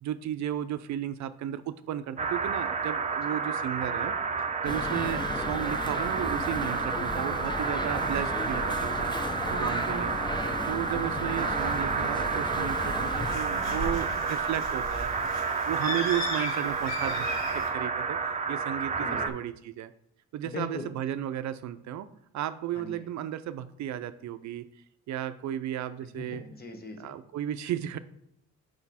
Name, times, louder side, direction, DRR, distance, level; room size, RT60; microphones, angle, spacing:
voice 1, 0.0-4.1 4.6-10.1 10.7-15.1 15.7-19.9 20.3-22.1 22.3-24.7 25.1-26.4 27.0-28.0, right 11 dB, 65° right, 13 dB, 0.5 m, -34 dB
sound 1, 2.2-19.3, right 5 dB, 25° right, 0.6 m, -30 dB
sound 2, 4.6-13.4, left 2 dB, 15° left, 0.7 m, -35 dB
voice 2, 10.1-10.8 19.0-19.3 20.4-20.9 22.7-23.0 26.1-27.1, left 3 dB, 30° left, 6 dB, 1.0 m, -41 dB
Bird, 12.7-17.7, left 1 dB, 60° left, 2.9 m, -36 dB
5.9 x 5.1 x 4.2 m, 0.74 s
cardioid pair, 90°, 30 cm